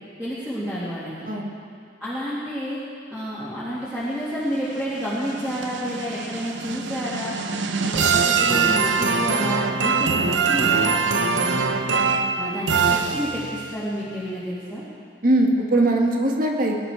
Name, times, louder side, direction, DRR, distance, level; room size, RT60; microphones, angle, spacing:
voice 1, 0.2-1.1 2.0-2.8 3.1-7.3 7.8-12.0 12.4-14.8, equal, 5° right, -11 dB, 2.4 m, -30 dB
voice 2, 1.2-1.6 15.2-16.8, right 1 dB, 50° right, 1 dB, 1.7 m, -20 dB
sound 1, 4.8-13.7, right 5 dB, 75° right, 0.8 m, -23 dB
21.0 x 11.0 x 4.6 m, 2.3 s
head